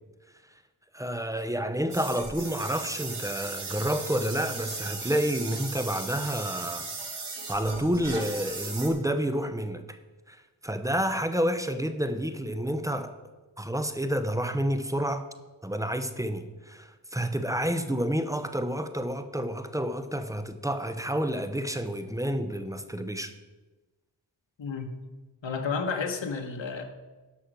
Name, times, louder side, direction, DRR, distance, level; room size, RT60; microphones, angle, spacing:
voice 1, 0.9-6.9 7.5-10.0 10.3-13.1 13.6-15.3 15.6-23.3, equal, 5° right, 0.8 m, -29 dB
sound 1, 1.9-8.9, right 4 dB, 65° right, 1.9 m, -37 dB
voice 2, 24.6-24.9 25.4-26.8, left 5 dB, 90° left, 1.2 m, -31 dB
11.5 x 6.3 x 6.0 m
wide cardioid pair, 80°, 44 cm